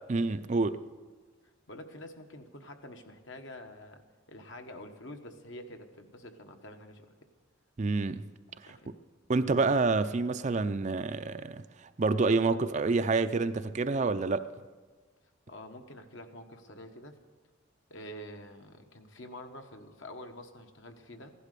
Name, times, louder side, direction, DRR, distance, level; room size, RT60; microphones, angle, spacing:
voice 1, 0.1-0.8 7.8-8.3 9.3-11.6 12.0-14.5, right 3 dB, 35° right, 0.5 m, -28 dB
voice 2, 1.7-4.0 4.3-7.1 8.6-8.9 15.5-17.2 17.9-21.3, left 1 dB, 65° left, 1.4 m, -47 dB
16.0 x 11.5 x 6.8 m
head